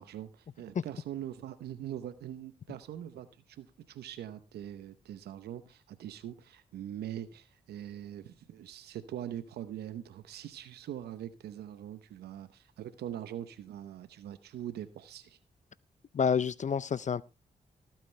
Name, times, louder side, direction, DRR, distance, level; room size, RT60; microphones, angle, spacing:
voice 1, 0.0-15.4, right 11 dB, 90° right, 13 dB, 0.9 m, -42 dB
voice 2, 16.1-17.2, left 6 dB, 50° left, 20 dB, 0.5 m, -28 dB
17.5 x 9.0 x 3.3 m, 0.27 s
supercardioid pair, 45°, 16 cm